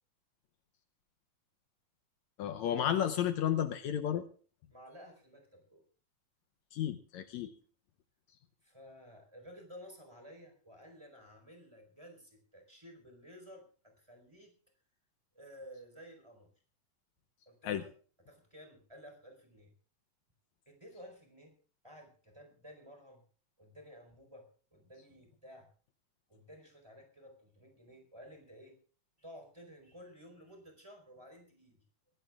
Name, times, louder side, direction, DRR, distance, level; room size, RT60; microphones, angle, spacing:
voice 1, 2.4-4.3 6.7-7.5 17.6-17.8, left 10 dB, 75° left, 8 dB, 2.0 m, -32 dB
voice 2, 4.7-5.8 8.6-14.5 15.3-16.5 17.5-17.9 18.3-19.7 20.7-21.6 21.8-23.2 23.6-25.7 26.3-28.7 29.2-31.8, equal, 10° right, 4 dB, 4.5 m, -54 dB
24.5 x 17.0 x 2.4 m, 0.40 s
omnidirectional pair, 3.4 m